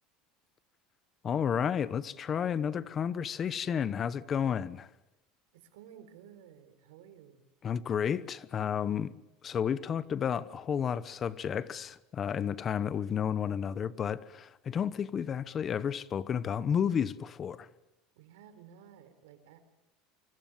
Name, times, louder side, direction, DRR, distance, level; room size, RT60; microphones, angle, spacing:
voice 1, 1.2-4.9 7.6-9.1 9.4-17.7, left 8 dB, 30° left, 1.0 m, -31 dB
voice 2, 5.5-7.4 18.1-19.6, right 9 dB, 85° right, 4.1 m, -54 dB
25.0 x 24.5 x 7.4 m
supercardioid pair, 125°, 0 cm